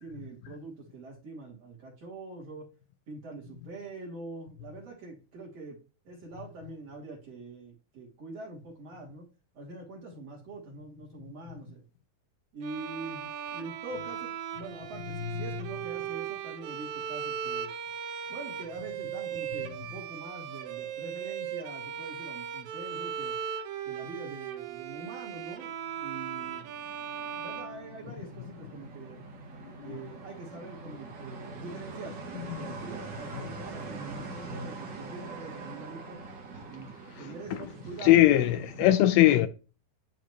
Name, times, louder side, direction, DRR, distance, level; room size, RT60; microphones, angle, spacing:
voice 1, 0.0-2.7 3.1-5.8 6.1-9.3 9.6-11.8 12.5-15.0 15.3-17.7 18.3-23.3 23.9-25.7 26.0-26.7 27.4-29.2 29.8-36.2 36.7-36.9 37.2-38.4, right 3 dB, 45° right, 3.8 m, -44 dB
Bowed string instrument, 12.6-28.5, right 8 dB, 80° right, 1.7 m, -38 dB
sound 1, 25.4-38.9, right 3 dB, 65° right, 1.1 m, -43 dB
voice 2, 38.0-39.5, left 14 dB, 80° left, 2.3 m, -20 dB
11.5 x 4.1 x 3.2 m
omnidirectional pair, 4.3 m